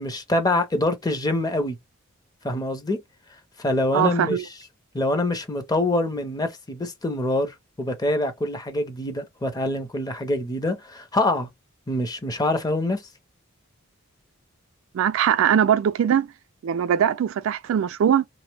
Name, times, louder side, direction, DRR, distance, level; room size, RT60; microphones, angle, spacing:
voice 1, 0.0-1.8 2.4-3.0 3.6-4.4 4.9-11.5 11.9-13.0, left 1 dB, 20° left, 0.5 m, -25 dB
voice 2, 3.9-4.4 14.9-16.3 16.6-18.3, right 9 dB, 65° right, 0.3 m, -21 dB
3.0 x 2.0 x 3.2 m
head